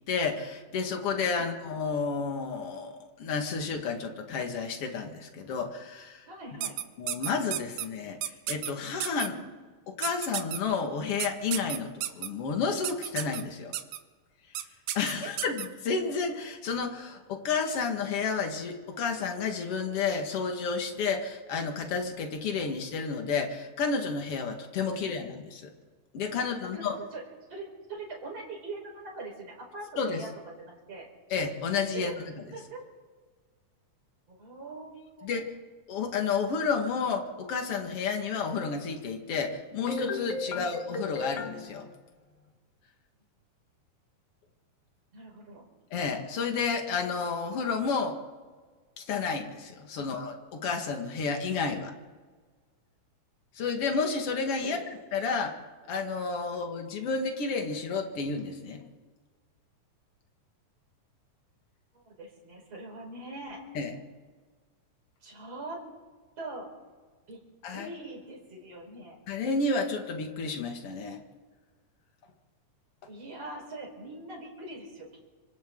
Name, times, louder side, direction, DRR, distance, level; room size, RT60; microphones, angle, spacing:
voice 1, 0.1-6.3 7.0-9.3 9.9-13.7 14.9-25.7 26.1-27.0 30.0-30.3 31.3-32.1 35.2-35.4 35.9-41.9 45.9-48.2 49.0-51.9 53.5-54.8 55.1-55.5 55.9-58.9 63.7-64.0 67.6-67.9 69.3-71.2, left 5 dB, 50° left, 4 dB, 2.6 m, -31 dB
voice 2, 6.3-6.8 9.3-9.4 24.9-25.1 26.7-27.2 27.5-30.3 30.6-31.1 31.9-32.2 32.5-32.8 34.3-35.3 40.5-40.7 45.1-45.6 50.1-50.2 54.6-54.9 61.9-63.6 65.2-65.8 66.4-66.7 67.3-67.4 67.7-69.2 73.1-75.3, right 2 dB, 50° right, -1 dB, 5.8 m, -42 dB
sound 1, 6.6-7.9 8.2-8.7 9.0-9.3 10.0-10.6 11.2-12.3 12.8-13.4 13.7-14.0 14.5-14.6 14.9-15.7, right 12 dB, 70° right, 2.1 m, -32 dB
27.0 x 25.5 x 3.9 m, 1.4 s
omnidirectional pair, 3.8 m